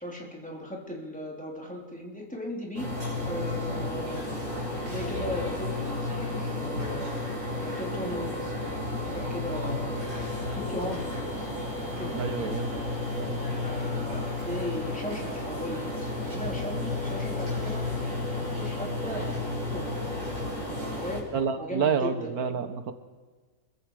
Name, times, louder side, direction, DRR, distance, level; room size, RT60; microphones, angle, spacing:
voice 1, 0.0-2.9 3.2-4.2 4.9-7.2 7.5-8.5 8.8-10.0 10.5-11.5 12.0-12.3 13.6-17.8 18.3-20.1 20.8-21.2 21.6-22.3, left 1 dB, 5° left, -2 dB, 3.8 m, -37 dB
sound 1, 2.8-21.2, left 2 dB, 55° right, 6.3 m, -32 dB
voice 2, 12.1-12.7 13.2-13.4 21.3-22.9, right 6 dB, 85° right, 9 dB, 1.7 m, -28 dB
27.0 x 23.0 x 5.0 m, 1.4 s
omnidirectional pair, 1.6 m